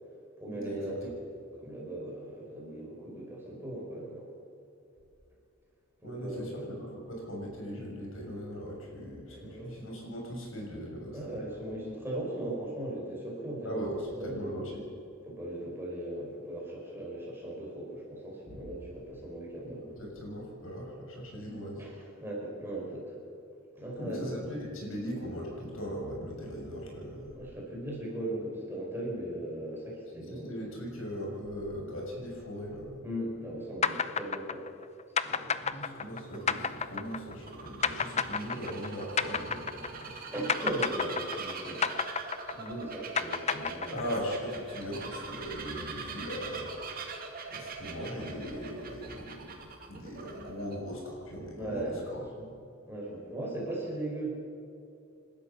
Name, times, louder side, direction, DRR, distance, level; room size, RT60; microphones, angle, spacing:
voice 1, 0.4-1.1 1.6-4.2 6.0-6.6 9.3-9.7 11.1-14.6 15.3-19.8 21.8-23.2 23.7-24.5 27.4-30.5 33.0-34.7 35.2-36.0 40.3-41.9 42.5-44.1 51.6-52.2 52.9-54.3, right 1 dB, 10° right, -4 dB, 5.8 m, -38 dB
voice 2, 6.0-11.5 13.6-14.8 18.5-18.6 19.6-21.8 24.0-27.3 30.3-33.0 35.5-40.2 43.9-47.1 47.5-49.6 49.9-52.5, equal, 75° left, -1 dB, 6.8 m, -39 dB
sound 1, 33.8-40.2 40.5-44.3, left 6 dB, 30° left, 0.6 m, -31 dB
Bird vocalization bird call bird song, 35.7-50.8, right 4 dB, 45° right, 2.3 m, -43 dB
28.5 x 13.0 x 7.1 m, 2.7 s
head